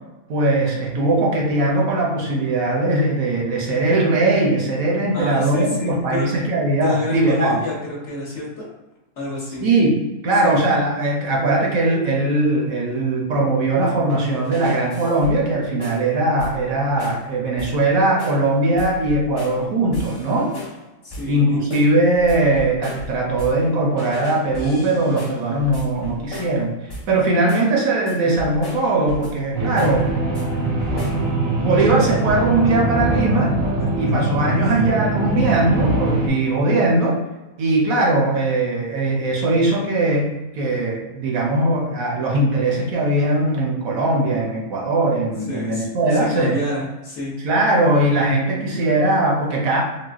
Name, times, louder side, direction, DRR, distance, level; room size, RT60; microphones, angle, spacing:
voice 1, 0.3-7.6 9.6-10.0 10.2-20.5 21.2-26.7 27.1-30.1 31.6-33.5 34.0-37.2 37.6-46.6 47.4-49.8, right 2 dB, 65° right, -2 dB, 1.0 m, -20 dB
voice 2, 5.1-6.3 6.8-8.7 9.2-9.6 10.4-10.6 21.0-21.6 34.0-34.1 45.5-47.3, left 2 dB, 60° left, -5 dB, 0.9 m, -28 dB
sound 1, 14.1-15.5 15.8-16.1 16.4-16.7 17.0-17.3 17.6-17.9 18.2-18.5 18.8-19.6 19.9-20.8 21.1-21.4 21.7-23.7 24.0-26.6 26.9-27.2 27.5-27.8 28.1-29.4 29.8-30.5 30.8-31.3, left 1 dB, 25° left, 0.5 m, -35 dB
sound 2, 29.5-36.3, right 2 dB, 90° right, 1.2 m, -22 dB
3.8 x 2.1 x 2.4 m, 1.1 s
omnidirectional pair, 1.7 m